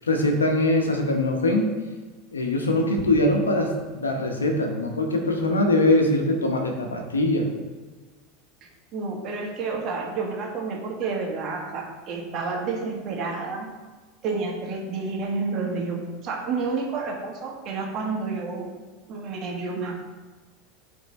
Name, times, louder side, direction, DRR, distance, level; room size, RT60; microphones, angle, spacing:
voice 1, 0.1-1.7 2.3-7.5, left 1 dB, 90° left, 3 dB, 0.9 m, -22 dB
voice 2, 8.9-13.7 14.2-18.7 19.1-20.0, right 4 dB, 45° right, 0 dB, 1.5 m, -30 dB
8.3 x 3.5 x 4.3 m, 1.3 s
hypercardioid pair, 85°, 0 cm